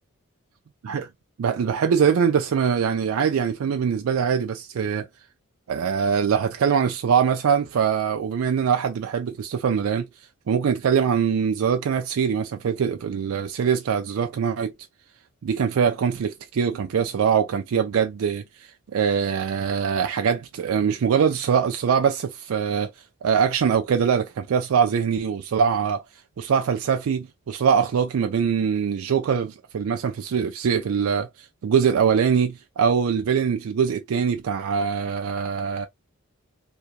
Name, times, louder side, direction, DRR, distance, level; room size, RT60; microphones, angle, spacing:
voice 1, 1.4-5.1 5.7-10.1 10.5-14.7 15.4-18.4 18.9-22.9 23.2-26.0 26.4-35.9, right 7 dB, 80° right, 0.4 m, -23 dB
2.8 x 2.3 x 2.2 m
head